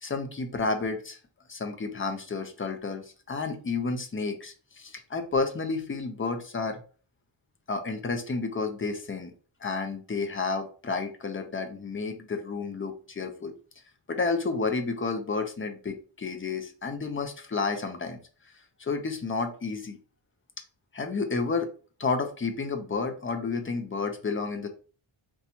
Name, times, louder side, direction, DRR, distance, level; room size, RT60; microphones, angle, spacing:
voice 1, 0.0-1.2 1.5-6.8 7.7-9.3 9.6-13.5 14.1-18.2 18.8-20.0 20.9-21.7 22.0-24.7, left 4 dB, 25° left, 6 dB, 0.5 m, -31 dB
2.7 x 2.3 x 4.1 m, 0.39 s
wide cardioid pair, 140°, 48 cm